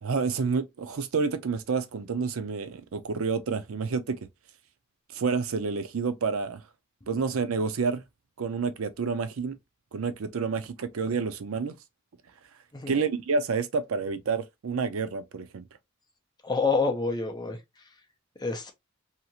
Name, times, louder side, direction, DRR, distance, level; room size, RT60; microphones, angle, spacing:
voice 1, 0.0-4.2 5.1-6.6 7.1-8.0 8.4-9.5 9.9-11.8 12.9-15.6, right 5 dB, 75° right, 0.5 m, -29 dB
voice 2, 16.4-17.6 18.4-18.7, left 4 dB, 20° left, 0.6 m, -27 dB
2.8 x 2.4 x 2.8 m
head